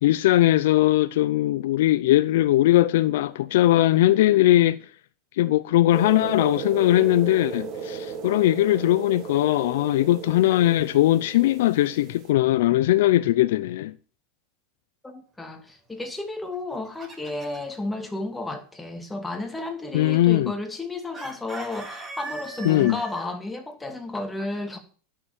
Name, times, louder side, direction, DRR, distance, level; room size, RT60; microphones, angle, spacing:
voice 1, 0.0-4.8 5.3-13.9 19.9-20.5 22.6-23.0, left 15 dB, 75° left, 0.5 m, -20 dB
sound 1, 5.9-12.3, right 5 dB, 45° right, 3.9 m, -35 dB
voice 2, 15.0-24.8, left 2 dB, 10° left, 2.6 m, -32 dB
Chicken rooster, 16.5-17.7 21.1-23.3, right 3 dB, 20° right, 5.9 m, -39 dB
11.0 x 6.8 x 7.5 m
hypercardioid pair, 110°, 0 cm